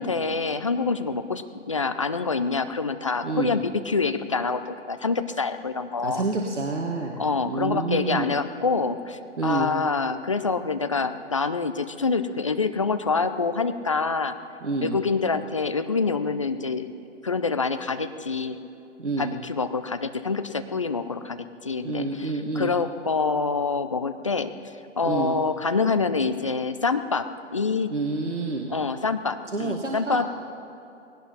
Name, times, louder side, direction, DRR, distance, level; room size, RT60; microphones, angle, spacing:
voice 1, 0.0-6.2 7.2-14.4 14.8-16.9 17.2-18.6 19.2-24.5 25.0-27.9 28.7-30.3, left 4 dB, 25° left, 10 dB, 0.4 m, -26 dB
voice 2, 6.0-7.2 7.4-8.3 9.4-9.7 14.6-14.9 19.0-19.3 21.8-22.7 25.0-25.4 27.9-28.7 29.5-30.2, right 3 dB, 70° right, 1 dB, 1.6 m, -28 dB
19.5 x 17.5 x 4.3 m, 2.8 s
figure-of-eight pair, 135°, 37 cm